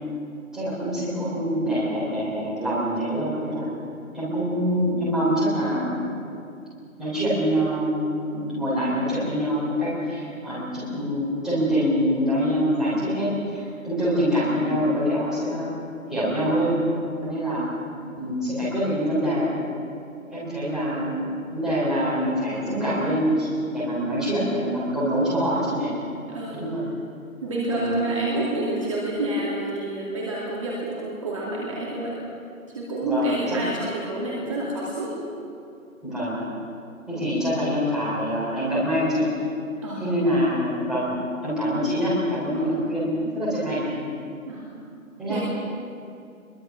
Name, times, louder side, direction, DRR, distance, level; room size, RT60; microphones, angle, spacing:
voice 1, 0.5-3.7 4.1-6.3 7.0-15.7 16.1-16.9 17.2-17.7 18.2-19.5 20.2-21.3 21.5-25.9 26.5-26.9 27.7-28.1 33.0-33.6 36.0-36.4 37.1-39.3 40.0-41.1 41.4-43.9 45.2-45.4, equal, ahead, -11 dB, 3.5 m, -25 dB
voice 2, 26.3-26.6 27.4-32.2 32.7-35.2 39.8-40.0 42.5-42.7 44.5-44.7 45.3-45.4, right 1 dB, 20° right, -5 dB, 2.6 m, -28 dB
23.0 x 22.5 x 6.0 m, 2.5 s
figure-of-eight pair, 165°, 43 cm